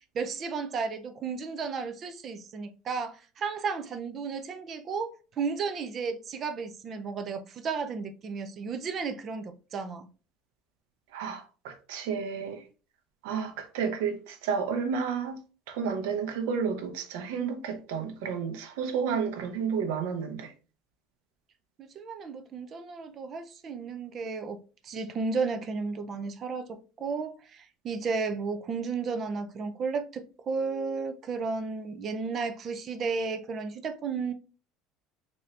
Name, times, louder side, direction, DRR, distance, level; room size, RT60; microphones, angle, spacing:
voice 1, 0.1-10.1 22.0-24.6 24.8-34.3, right 5 dB, 30° right, 0.4 m, -33 dB
voice 2, 11.1-12.7 13.2-15.4 15.7-20.5, right 6 dB, 85° right, 0.9 m, -31 dB
4.1 x 2.7 x 3.2 m
cardioid pair, 170°, 0 cm